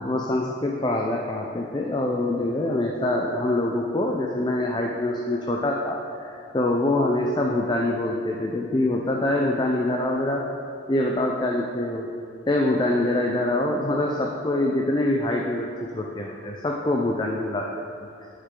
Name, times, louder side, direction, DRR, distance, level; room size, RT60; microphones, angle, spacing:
voice 1, 0.0-10.5 10.9-12.1 12.5-17.7, left 1 dB, 20° left, 0 dB, 0.4 m, -25 dB
9.0 x 6.5 x 3.7 m, 2.5 s
head